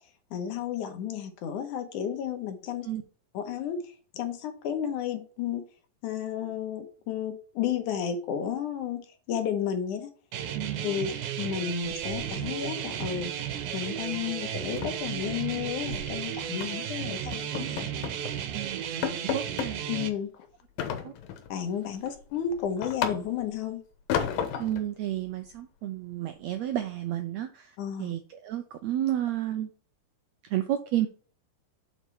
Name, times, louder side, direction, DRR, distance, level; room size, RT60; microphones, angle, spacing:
voice 1, 0.3-2.9 3.3-3.8 4.1-5.6 6.0-10.1 10.8-11.1 11.4-17.9 19.9-20.5 21.5-23.8 27.8-28.1, left 8 dB, 70° left, 6 dB, 2.5 m, -32 dB
sound 1, 10.3-20.1, right 9 dB, 70° right, 2.2 m, -34 dB
voice 2, 10.5-10.9 18.5-18.8 19.2-19.8 21.0-21.1 24.6-27.7 28.0-29.7 30.5-31.1, right 12 dB, 85° right, 7 dB, 1.5 m, -31 dB
sound 2, 11.8-12.7 12.9-13.2 13.5-13.7 14.0-14.1 14.5-16.1 16.6-16.9 17.3-18.3 18.6-18.7 19.0-19.8 20.8-21.5 21.9-23.6 24.1-24.9, left 8 dB, 90° left, 2.8 m, -33 dB
8.1 x 4.5 x 4.5 m, 0.40 s
omnidirectional pair, 3.9 m